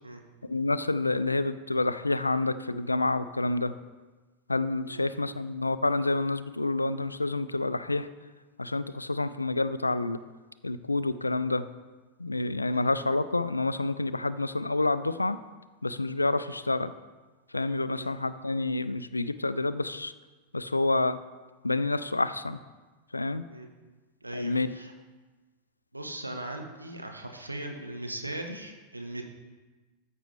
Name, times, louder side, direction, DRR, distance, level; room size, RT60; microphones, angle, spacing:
voice 1, 0.4-3.7 4.5-8.1 8.6-10.2 10.6-11.7 12.2-15.4 15.8-16.9 17.5-20.1 20.5-21.2 21.6-22.6 23.1-23.4 24.3-24.7, left 2 dB, 80° left, 14 dB, 0.3 m, -28 dB
voice 2, 24.2-24.9 25.9-29.2, right 1 dB, 85° right, 3 dB, 0.8 m, -39 dB
13.5 x 5.3 x 3.3 m, 1.3 s
figure-of-eight pair, 90°, 0 cm